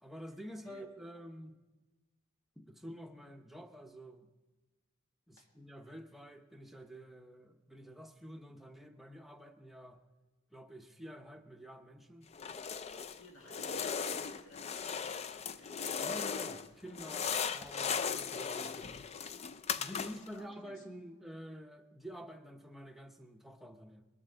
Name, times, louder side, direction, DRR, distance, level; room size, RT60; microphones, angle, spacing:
voice 1, 0.0-1.6 2.6-4.3 5.3-10.0 10.5-12.3 16.0-19.0 19.7-24.1, equal, ahead, 4 dB, 0.7 m, -49 dB
sound 1, 12.3-13.2 13.5-16.7 16.9-20.4, left 6 dB, 30° left, 0.4 m, -37 dB
voice 2, 13.2-15.2 15.5-15.7 20.0-20.9, left 2 dB, 75° left, 2 dB, 2.1 m, -57 dB
21.0 x 7.4 x 6.6 m, 1.2 s
head